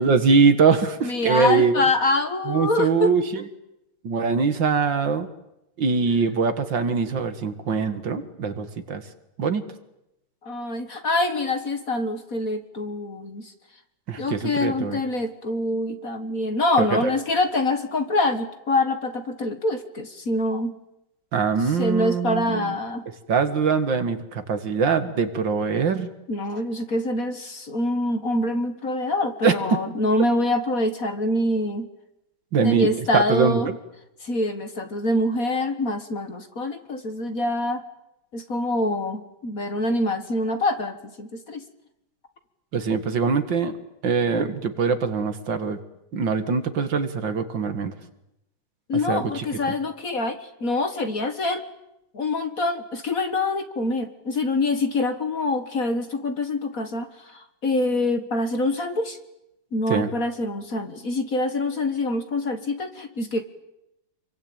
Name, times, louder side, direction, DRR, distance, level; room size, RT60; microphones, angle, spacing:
voice 1, 0.0-1.8 2.5-3.5 4.0-5.3 5.8-9.0 9.4-9.7 14.1-15.0 16.9-17.1 21.3-22.7 23.3-26.1 29.4-29.8 32.5-33.8 42.7-43.7 44.0-45.8 46.1-47.9 49.1-49.5 59.9-60.1, right 5 dB, 60° right, 9 dB, 2.3 m, -22 dB
voice 2, 1.0-3.1 10.4-13.5 14.2-20.8 21.8-23.0 26.3-31.9 32.6-33.7 34.2-37.8 38.3-41.6 48.9-51.6 52.1-59.2 59.7-63.4, left 2 dB, 40° left, 8 dB, 1.9 m, -25 dB
27.0 x 24.0 x 8.9 m, 0.87 s
omnidirectional pair, 2.4 m